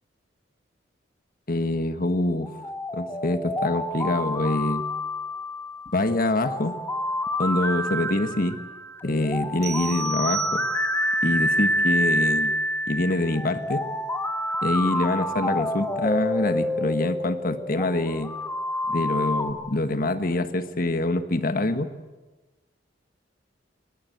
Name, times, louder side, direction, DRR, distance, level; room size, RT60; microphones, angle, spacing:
voice 1, 1.5-2.5 2.9-4.8 5.9-6.8 7.4-8.6 9.0-10.6 11.2-12.6 12.9-13.9 14.6-18.3 18.9-21.9, left 2 dB, 50° left, 9 dB, 1.4 m, -25 dB
sound 1, 2.4-19.5, left 1 dB, 10° left, 1.6 m, -28 dB
sound 2, 9.6-11.1, right 10 dB, 35° right, 1.3 m, -34 dB
22.5 x 20.0 x 8.0 m, 1.2 s
head